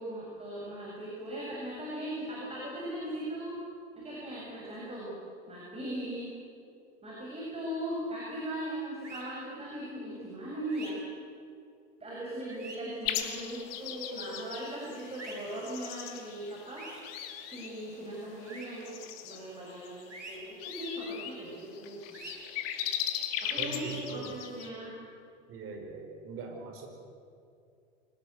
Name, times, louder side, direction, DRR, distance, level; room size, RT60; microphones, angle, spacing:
voice 1, 0.0-3.6 4.0-5.2 5.5-6.3 7.0-11.0 12.0-16.8 17.5-19.0 19.2-22.2 23.4-24.9, right 1 dB, 15° right, -4 dB, 7.1 m, -39 dB
sound 1, 9.0-9.2 10.7-10.9 12.5-12.8 15.2-15.4 16.8-17.0 18.5-18.7 20.1-20.4 22.1-22.3 23.7-24.0, right 2 dB, 85° right, 5.0 m, -44 dB
sound 2, 13.0-24.7, left 10 dB, 55° left, 2.4 m, -39 dB
voice 2, 23.6-24.4 25.5-26.9, right 4 dB, 40° right, 3 dB, 5.5 m, -41 dB
24.5 x 18.5 x 8.1 m, 2.4 s
figure-of-eight pair, 90°, 35 cm